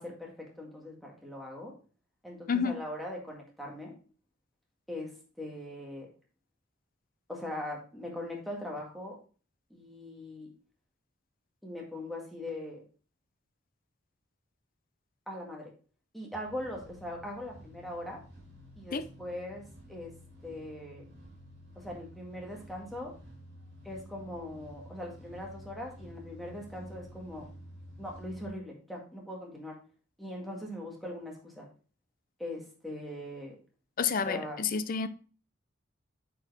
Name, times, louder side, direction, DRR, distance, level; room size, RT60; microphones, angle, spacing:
voice 1, 0.0-1.7 2.2-4.0 4.9-6.1 7.3-9.2 9.7-10.5 11.6-12.8 15.3-15.7 16.1-18.2 18.8-19.6 19.9-20.1 20.4-21.0 21.8-23.1 23.8-27.5 28.0-29.8 30.2-31.7 32.4-33.6 34.3-34.6, left 1 dB, ahead, -1 dB, 1.9 m, -41 dB
voice 2, 2.5-2.8 18.9-19.1 34.0-35.1, left 6 dB, 45° left, 13 dB, 0.5 m, -29 dB
sound 1, 16.3-28.5, equal, 65° right, 4.0 m, -51 dB
8.9 x 4.7 x 3.5 m, 0.38 s
head